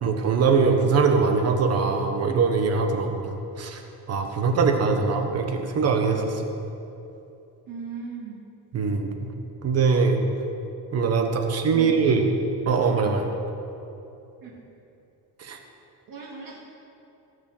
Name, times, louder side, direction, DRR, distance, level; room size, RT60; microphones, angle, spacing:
voice 1, 0.0-3.8 4.1-6.5 8.7-9.1 9.6-10.2 10.9-12.2 12.7-13.3 15.4-15.6, right 5 dB, 40° right, 4 dB, 1.3 m, -22 dB
voice 2, 7.7-8.4 11.7-12.2 14.4-14.6 16.1-16.6, right 5 dB, 60° right, -4 dB, 2.2 m, -38 dB
17.0 x 6.5 x 7.8 m, 2.8 s
cardioid pair, 175°, 39 cm